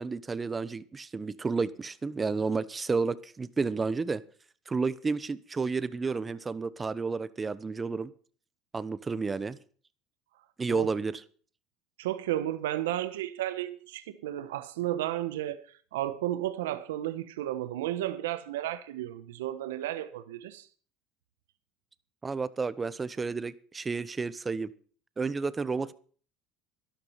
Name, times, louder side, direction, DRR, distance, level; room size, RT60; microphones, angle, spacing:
voice 1, 0.0-4.2 4.7-8.1 8.7-9.6 10.6-11.1 22.2-24.7 25.2-25.9, right 4 dB, 20° right, 1.0 m, -31 dB
voice 2, 12.0-20.7, right 13 dB, 90° right, 1.1 m, -33 dB
12.5 x 12.0 x 5.7 m
supercardioid pair, 100°, 0 cm